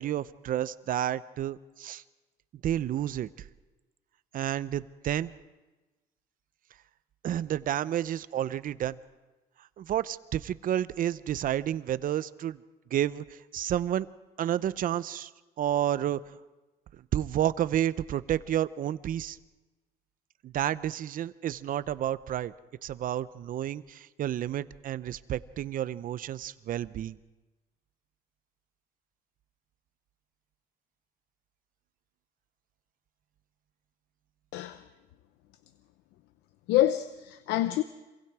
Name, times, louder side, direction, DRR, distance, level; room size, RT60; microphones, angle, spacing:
voice 1, 0.0-2.0 2.6-3.3 4.3-5.3 7.2-9.0 9.8-12.6 12.9-14.1 14.4-15.3 15.6-16.2 17.1-19.4 20.4-22.5 22.8-27.2, right 11 dB, 55° right, 0.7 m, -30 dB
voice 2, 34.5-34.8 36.7-37.8, left 13 dB, 90° left, 0.7 m, -26 dB
27.0 x 22.5 x 4.9 m
cardioid pair, 110°, 17 cm